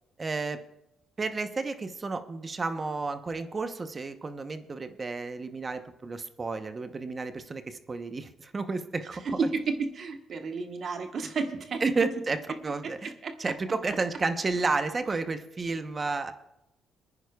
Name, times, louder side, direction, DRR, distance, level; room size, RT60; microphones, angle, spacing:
voice 1, 0.2-0.6 1.2-9.2 11.8-12.4 12.6-13.1 13.4-16.3, right 3 dB, 30° right, 9 dB, 0.9 m, -31 dB
voice 2, 9.1-11.8 12.5-12.6 12.8-13.5, right 4 dB, 55° right, 5 dB, 1.3 m, -32 dB
27.0 x 9.8 x 2.4 m, 0.88 s
cardioid pair, 90°, 0 cm